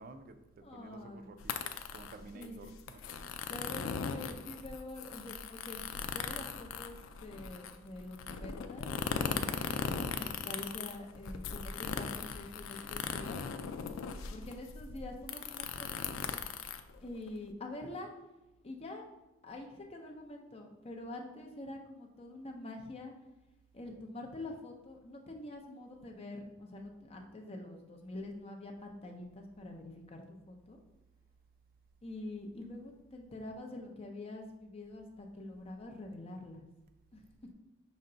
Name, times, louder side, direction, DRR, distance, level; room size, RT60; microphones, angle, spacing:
voice 1, 0.0-3.0, right 3 dB, 45° right, 8 dB, 0.4 m, -52 dB
voice 2, 0.6-1.4 2.3-2.8 3.5-13.4 14.3-16.2 17.0-18.1 18.6-19.0 19.4-23.1 23.7-30.8 32.0-36.6 37.1-37.2, left 2 dB, 30° left, 2 dB, 0.6 m, -46 dB
sound 1, 1.4-17.5, left 6 dB, 85° left, 0.3 m, -39 dB
5.5 x 2.2 x 3.8 m, 1.0 s
head